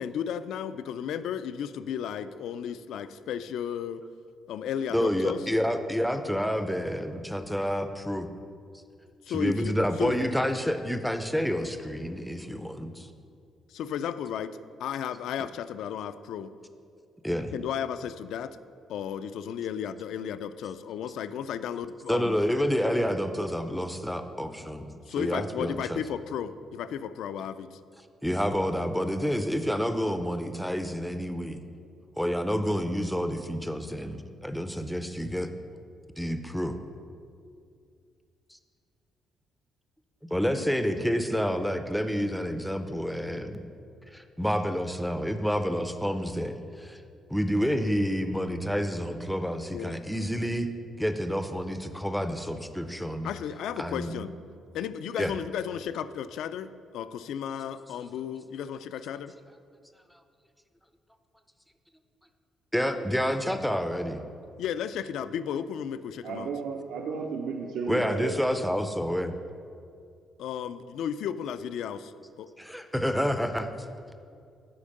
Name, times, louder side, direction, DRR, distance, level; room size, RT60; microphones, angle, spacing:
voice 1, 0.0-4.0 4.5-5.4 9.2-10.1 13.7-16.5 17.5-18.6 18.9-22.4 25.1-27.8 40.4-40.5 49.7-49.9 53.2-54.3 54.7-59.3 64.6-66.5 70.4-72.1 72.4-72.5, left 8 dB, 70° left, 13 dB, 0.3 m, -34 dB
voice 2, 4.9-8.3 9.3-13.1 17.2-17.5 22.1-24.9 25.2-26.0 28.2-31.6 32.2-35.5 36.2-36.8 38.5-38.6 40.3-43.6 44.1-47.0 47.3-50.7 51.0-53.3 53.8-54.1 55.2-55.3 62.7-64.2 67.9-69.4 72.6-73.7, equal, ahead, 8 dB, 0.4 m, -29 dB
voice 3, 66.2-68.3, right 5 dB, 75° right, 1 dB, 0.6 m, -33 dB
8.6 x 5.1 x 6.5 m, 2.4 s
cardioid pair, 175°, 0 cm